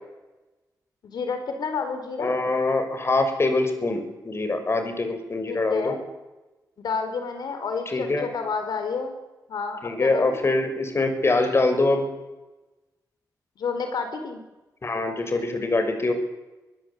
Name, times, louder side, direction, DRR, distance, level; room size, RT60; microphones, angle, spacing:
voice 1, 1.0-2.4 5.5-6.0 6.8-9.2 9.5-10.3 13.6-14.4, left 5 dB, 80° left, 6 dB, 4.2 m, -30 dB
voice 2, 2.2-5.9 7.9-8.3 9.8-12.0 14.8-16.1, left 2 dB, 40° left, 7 dB, 5.8 m, -24 dB
24.0 x 21.5 x 8.4 m, 1.1 s
cardioid pair, 90°, 7 cm